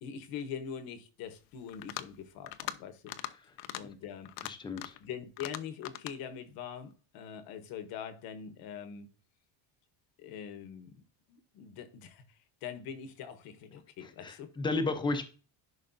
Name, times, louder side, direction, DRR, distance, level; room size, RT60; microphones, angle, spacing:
voice 1, 0.0-3.1 3.7-4.4 4.7-9.1 10.2-11.0 11.3-14.5, left 8 dB, 55° left, 1.0 m, -43 dB
sound 1, 1.7-2.1 2.5-2.8 3.1-3.3 3.6-3.8 4.2-5.0 5.4-6.2, left 15 dB, 85° left, 0.7 m, -40 dB
voice 2, 4.4-5.0 14.0-15.2, left 3 dB, 10° left, 0.6 m, -33 dB
11.0 x 5.2 x 2.6 m
cardioid pair, 170°, 43 cm